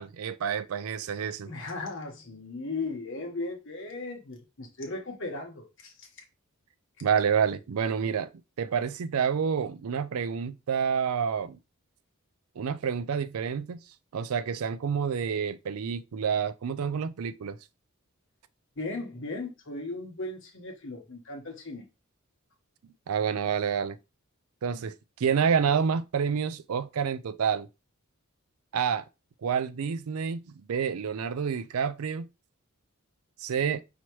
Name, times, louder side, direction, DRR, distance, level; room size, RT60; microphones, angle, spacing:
voice 1, 0.0-1.5 7.0-8.3 8.6-11.6 12.6-13.8 14.1-17.6 23.1-24.0 24.6-27.7 28.7-29.0 29.4-32.3 33.4-33.8, right 7 dB, 85° right, 0.4 m, -28 dB
voice 2, 1.4-6.1 18.8-21.8, left 3 dB, 60° left, 1.2 m, -37 dB
5.6 x 3.0 x 3.0 m
head